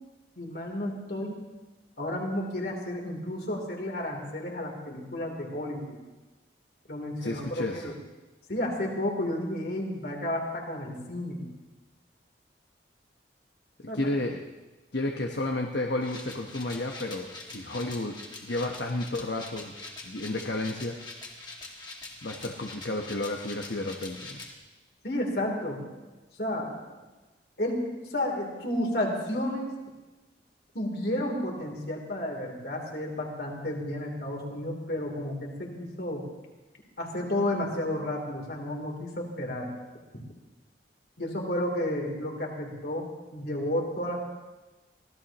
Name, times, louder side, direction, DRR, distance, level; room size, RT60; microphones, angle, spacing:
voice 1, 0.3-1.4 2.0-6.0 6.9-7.9 8.5-11.5 13.8-14.0 25.0-25.8 26.4-26.7 27.6-27.8 28.1-29.7 30.7-36.2 37.0-39.7 41.2-44.2, left 1 dB, 60° left, 0 dB, 3.4 m, -32 dB
voice 2, 7.2-7.9 13.8-14.4 14.9-18.2 18.4-19.7 20.0-21.0 22.2-24.4, left 2 dB, 75° left, 1 dB, 1.2 m, -32 dB
sound 1, 16.0-24.5, left 2 dB, 25° left, 2.1 m, -44 dB
24.5 x 17.0 x 3.0 m, 1.2 s
head